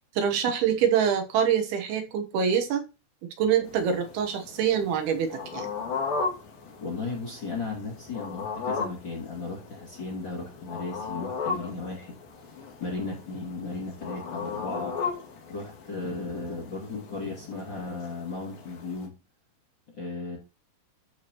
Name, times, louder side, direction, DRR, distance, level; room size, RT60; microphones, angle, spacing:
voice 1, 0.2-2.8 3.4-5.7, right 8 dB, 75° right, 5 dB, 3.0 m, -25 dB
sound 1, 3.6-19.1, left 5 dB, 65° left, 3.8 m, -37 dB
voice 2, 6.8-12.1 12.8-14.9 15.5-19.2 19.9-20.4, left 3 dB, 35° left, -2 dB, 2.5 m, -35 dB
13.0 x 4.7 x 2.9 m, 0.29 s
omnidirectional pair, 4.6 m